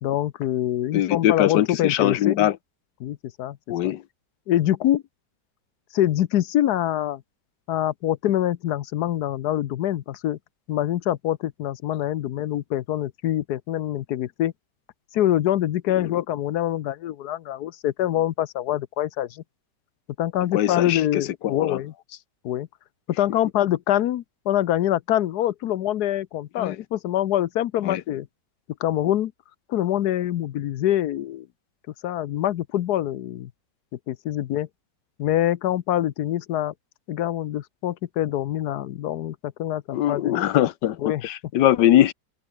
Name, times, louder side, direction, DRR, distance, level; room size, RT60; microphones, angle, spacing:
voice 1, 0.0-2.4 3.0-3.6 3.8-3.9 4.5-5.0 5.9-7.2 7.7-10.4 10.7-14.5 15.1-19.4 20.2-21.9 22.4-22.7 23.2-28.3 28.8-29.3 29.7-31.5 32.0-33.5 34.1-34.7 35.2-36.7 37.1-40.4 41.0-41.2, left 12 dB, 70° left, 1.3 m, -25 dB
voice 2, 0.9-2.6 3.7-4.0 15.9-16.1 20.5-21.8 26.6-26.8 27.8-28.0 39.9-42.1, left 12 dB, 90° left, 1.5 m, -22 dB
omnidirectional pair, 1.8 m